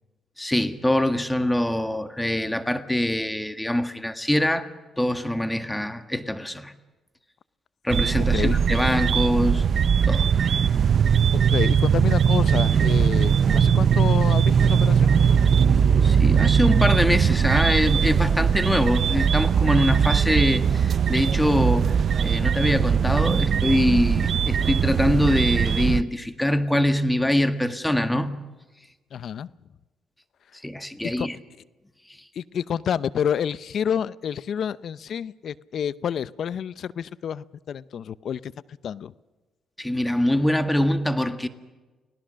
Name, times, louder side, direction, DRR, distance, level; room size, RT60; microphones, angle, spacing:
voice 1, 0.4-4.7 5.0-6.7 7.8-9.6 10.1-10.3 16.0-21.9 22.2-28.4 30.6-31.4 39.8-41.5, left 1 dB, 10° left, 1.8 m, -23 dB
sound 1, 7.9-26.0, right 7 dB, 55° right, 0.7 m, -20 dB
voice 2, 8.3-8.8 11.5-15.1 29.1-29.5 31.0-31.3 32.3-38.5 38.8-39.1, left 8 dB, 60° left, 0.7 m, -29 dB
30.0 x 18.0 x 6.5 m
cardioid pair, 90°, 0 cm